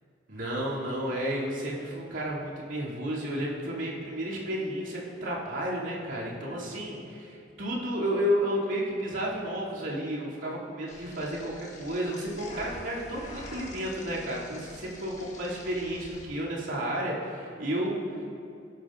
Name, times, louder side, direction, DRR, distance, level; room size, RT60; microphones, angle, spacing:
voice 1, 0.3-18.2, equal, 85° right, -7 dB, 2.8 m, -32 dB
sound 1, 10.9-16.3, left 1 dB, 40° left, 1.5 m, -46 dB
17.5 x 11.0 x 2.6 m, 2.5 s
head